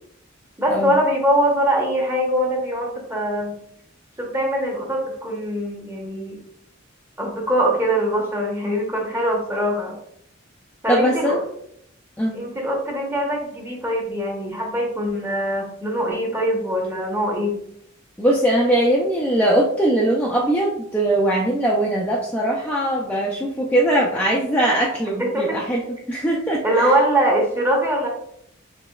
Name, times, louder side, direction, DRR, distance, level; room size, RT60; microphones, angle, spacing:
voice 1, 0.6-3.5 4.2-6.4 7.2-10.0 10.8-11.4 12.3-17.5 25.2-25.6 26.6-28.1, right 1 dB, 15° right, -1 dB, 0.9 m, -22 dB
voice 2, 10.9-11.4 12.2-12.4 18.2-25.8 26.1-26.9, right 1 dB, 10° left, -3 dB, 0.4 m, -20 dB
4.8 x 3.3 x 2.3 m, 0.71 s
head